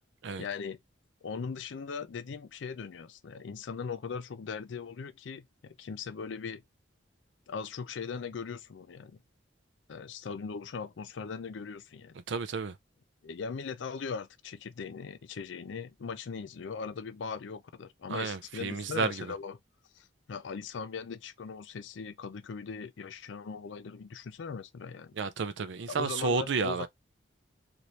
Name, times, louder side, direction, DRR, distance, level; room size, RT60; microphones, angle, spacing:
voice 1, 0.4-0.8 1.2-6.6 7.5-9.2 9.9-12.2 13.2-19.6 19.9-25.1 25.9-26.9, left 5 dB, 75° left, 0.4 m, -39 dB
voice 2, 12.3-12.8 18.1-19.3 25.2-26.9, right 5 dB, 70° right, 0.5 m, -31 dB
2.8 x 2.6 x 3.1 m
head